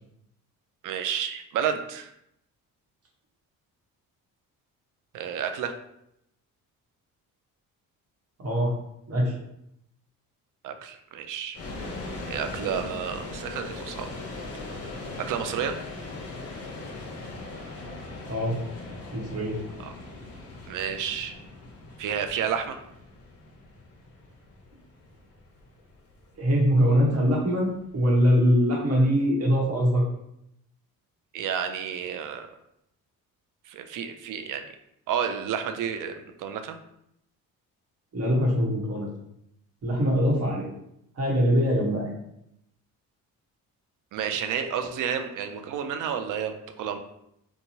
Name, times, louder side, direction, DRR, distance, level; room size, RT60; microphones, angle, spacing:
voice 1, 0.8-2.1 5.1-5.7 10.6-11.6 12.3-14.1 15.2-15.7 20.7-21.3 22.0-22.8 31.3-32.5 33.7-34.6 35.1-36.8 44.1-47.0, right 8 dB, 65° right, 7 dB, 0.5 m, -30 dB
voice 2, 8.4-8.8 9.1-9.3 18.3-18.6 19.1-19.6 26.4-30.0 38.1-39.1 39.8-40.6 41.2-42.2, equal, 45° right, -2 dB, 1.0 m, -23 dB
sound 1, 11.5-28.5, left 2 dB, 45° left, 0.7 m, -40 dB
2.9 x 2.2 x 2.7 m, 0.78 s
cardioid pair, 85°, 35 cm